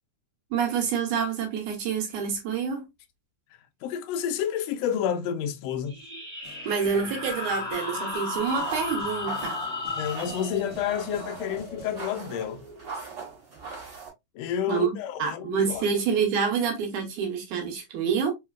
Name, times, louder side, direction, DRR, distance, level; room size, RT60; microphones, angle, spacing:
voice 1, 0.5-2.9 6.7-9.6 14.7-18.3, right 6 dB, 75° right, 2.2 m, -27 dB
voice 2, 3.8-5.9 10.0-12.6 14.3-15.8, left 9 dB, 85° left, 1.4 m, -29 dB
sound 1, 5.9-13.1, left 2 dB, 20° right, 1.3 m, -35 dB
sound 2, 6.4-12.0, left 4 dB, 70° left, 0.6 m, -48 dB
sound 3, 8.5-14.1, right 5 dB, 35° right, 1.9 m, -41 dB
4.8 x 2.9 x 2.3 m
omnidirectional pair, 3.7 m